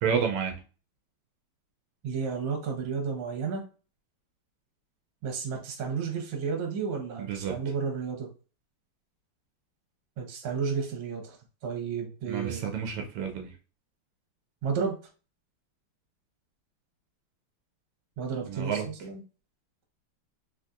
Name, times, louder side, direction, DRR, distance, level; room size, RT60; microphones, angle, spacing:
voice 1, 0.0-0.5 7.2-7.5 12.3-13.5 18.5-18.9, right 7 dB, 85° right, 3 dB, 1.5 m, -30 dB
voice 2, 2.0-3.6 5.2-8.3 10.2-11.4 11.6-12.6 14.6-14.9 18.2-19.2, right 6 dB, 70° right, 1 dB, 1.6 m, -32 dB
4.0 x 2.7 x 2.3 m, 0.35 s
omnidirectional pair, 2.4 m